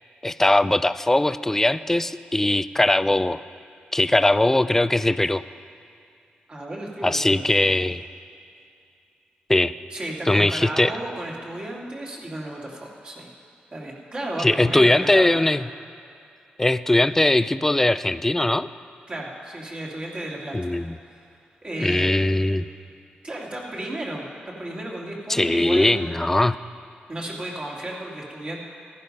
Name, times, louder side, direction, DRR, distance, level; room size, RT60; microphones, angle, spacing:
voice 1, 0.2-3.4 3.9-5.4 7.0-8.1 9.5-9.7 10.3-10.9 14.4-15.6 16.6-18.7 20.5-20.9 21.8-22.6 25.3-26.6, left 1 dB, 10° left, 15 dB, 0.3 m, -20 dB
voice 2, 6.5-7.5 9.9-13.3 13.7-15.4 19.1-20.5 21.6-22.4 23.2-25.9 27.1-28.6, right 1 dB, 35° right, -3 dB, 2.5 m, -33 dB
15.0 x 11.0 x 5.4 m, 2.5 s
cardioid pair, 90°, 3 cm